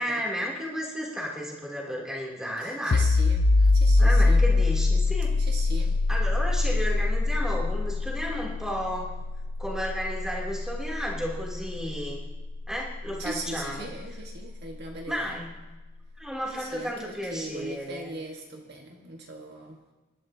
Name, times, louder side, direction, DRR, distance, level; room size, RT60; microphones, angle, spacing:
voice 1, 0.0-3.1 4.0-5.3 6.1-9.1 9.6-12.2 12.7-13.9 15.1-15.5 16.2-18.2, equal, 5° right, -4 dB, 2.9 m, -33 dB
voice 2, 2.6-4.5 5.4-6.0 13.2-15.4 16.5-19.8, right 2 dB, 50° right, 1 dB, 1.5 m, -40 dB
sound 1, 2.9-14.3, left 3 dB, 60° left, 0.6 m, -24 dB
26.5 x 12.0 x 2.8 m, 1.2 s
head